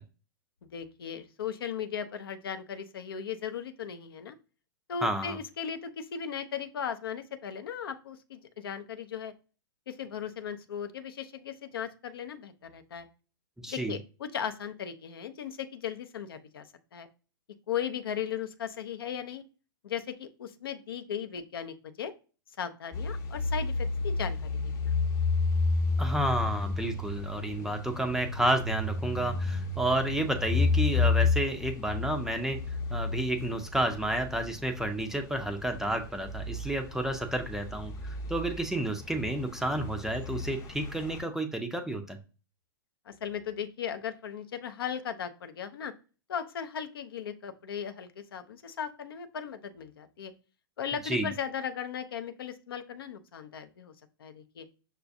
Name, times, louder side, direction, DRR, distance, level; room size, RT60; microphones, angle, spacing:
voice 1, 0.7-4.4 4.9-9.3 9.9-13.1 13.7-17.1 17.7-19.4 19.8-22.1 22.6-24.9 43.1-45.9 46.3-50.3 50.8-53.9 54.2-54.7, left 8 dB, 70° left, 9 dB, 0.5 m, -37 dB
voice 2, 5.0-5.4 13.6-14.0 26.0-32.6 32.9-42.2 51.0-51.3, right 1 dB, 5° right, 5 dB, 0.4 m, -31 dB
sound 1, 22.9-41.2, left 4 dB, 25° left, 0.7 m, -31 dB
6.0 x 2.2 x 2.6 m, 0.35 s
figure-of-eight pair, 105°, 13 cm